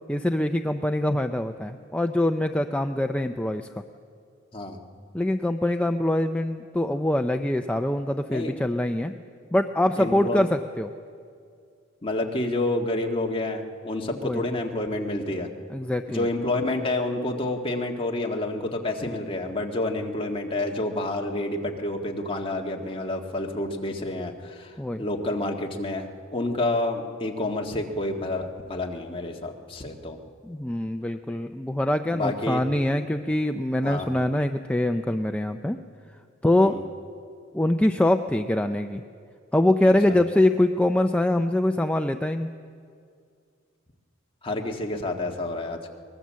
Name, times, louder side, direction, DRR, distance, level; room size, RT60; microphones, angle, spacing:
voice 1, 0.1-3.8 5.1-9.1 9.5-10.9 14.2-14.4 15.7-16.3 24.8-25.0 30.4-35.8 36.4-36.8 37.5-39.0 39.5-42.5, left 1 dB, 5° left, 6 dB, 0.5 m, -24 dB
voice 2, 10.0-10.4 12.0-15.5 16.1-30.2 32.1-32.6 33.8-34.1 36.6-36.8 40.1-40.2 44.4-45.9, left 2 dB, 25° left, 1 dB, 1.8 m, -29 dB
23.0 x 20.0 x 7.5 m, 2.3 s
head